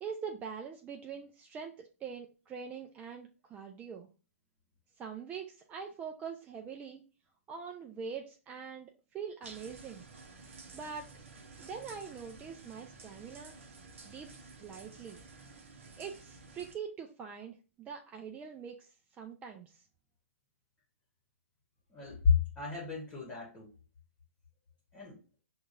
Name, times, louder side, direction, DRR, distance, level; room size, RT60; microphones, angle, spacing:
voice 1, 0.0-4.1 5.0-7.0 7.5-10.0 10.7-11.1 11.6-13.6 14.0-15.2 16.0-19.8, right 6 dB, 20° right, 0.4 m, -43 dB
sound 1, 9.4-16.8, right 4 dB, 60° right, 0.9 m, -52 dB
voice 2, 21.9-23.7 24.9-25.2, left 6 dB, 15° left, 1.2 m, -31 dB
6.1 x 2.4 x 2.5 m
figure-of-eight pair, 115°, 8 cm